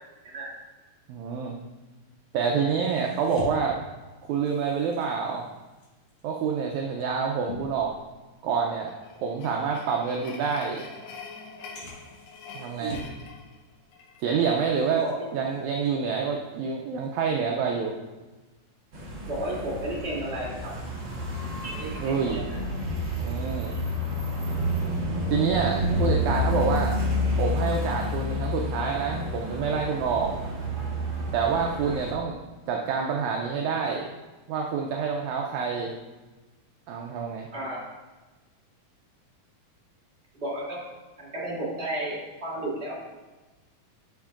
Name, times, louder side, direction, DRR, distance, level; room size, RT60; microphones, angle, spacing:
voice 1, 1.1-1.5 2.3-3.8 4.3-5.5 6.2-7.9 8.4-8.9 9.2-10.8 12.5-13.0 14.2-15.0 15.3-17.9 22.0-22.4 23.2-23.8 25.3-26.9 27.4-30.3 31.3-32.4 32.7-34.1 34.5-35.9 36.9-37.5, right 6 dB, 80° right, 1 dB, 1.7 m, -27 dB
sound 1, 2.8-8.6 9.0-9.2 9.8-9.9 10.7-10.8 11.7-13.3 13.6-14.0 14.4-16.6 16.9-17.2, left 2 dB, 50° left, 1.8 m, -44 dB
sound 2, 8.8-14.3, left 4 dB, 80° left, 2.6 m, -45 dB
sound 3, 18.9-32.1, left 1 dB, 55° right, 1.3 m, -29 dB
voice 2, 19.3-20.6 21.7-22.4 23.7-23.8 31.8-32.0 37.5-37.8 40.3-40.8 41.2-42.9, right 1 dB, 20° right, -9 dB, 2.4 m, -33 dB
10.0 x 6.1 x 2.4 m, 1.2 s
omnidirectional pair, 3.9 m